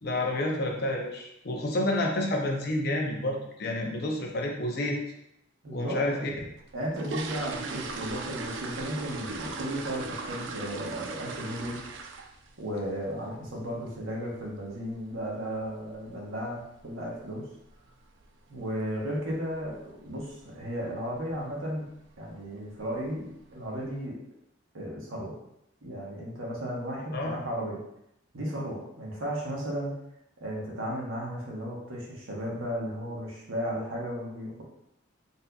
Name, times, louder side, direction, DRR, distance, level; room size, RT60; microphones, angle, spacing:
voice 1, 0.0-5.0 5.7-6.3 27.1-27.4, left 1 dB, 55° left, 1 dB, 0.6 m, -29 dB
voice 2, 5.6-6.3 6.7-11.8 12.6-17.5 18.5-21.9 22.2-24.2 24.7-25.4 25.8-27.8 28.3-29.9 30.4-34.6, equal, 90° right, -3 dB, 1.0 m, -34 dB
sound 1, 6.6-12.5 12.8-13.1 13.4-13.5 13.9-14.0 14.4-14.6 14.9-15.0 15.6-15.7 15.9-16.1 16.6-16.9 17.2-17.3 17.7-17.9 18.2-18.3 18.7-18.8 19.4-19.8 20.1-20.4 20.8-20.9 21.3-21.4 22.1-22.3 22.7-23.2 23.6-23.7, right 4 dB, 65° right, 0.3 m, -38 dB
4.1 x 2.6 x 2.2 m, 0.79 s
head